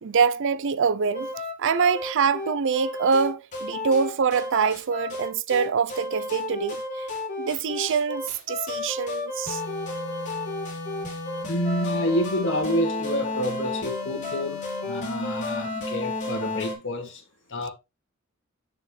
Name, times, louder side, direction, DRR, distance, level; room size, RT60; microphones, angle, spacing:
voice 1, 0.0-1.3 1.6-7.1 7.4-9.6, right 6 dB, 60° right, 0.5 m, -24 dB
sound 1, 1.1-16.8, left 2 dB, 35° left, 2.8 m, -32 dB
voice 2, 11.5-17.2 17.5-17.7, equal, 60° left, 1.8 m, -28 dB
6.9 x 6.0 x 3.2 m
head